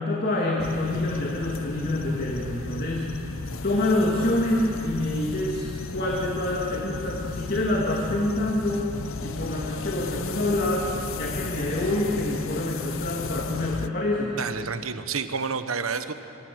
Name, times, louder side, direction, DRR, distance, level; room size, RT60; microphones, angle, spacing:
voice 1, 0.0-3.1 3.6-8.9 9.2-10.8 11.2-14.4, left 1 dB, 45° left, -3 dB, 2.4 m, -26 dB
sound 1, 0.6-13.9, left 4 dB, 70° left, 0.7 m, -35 dB
voice 2, 14.4-16.1, right 5 dB, 80° right, 10 dB, 1.1 m, -29 dB
25.5 x 23.0 x 6.3 m, 2.9 s
head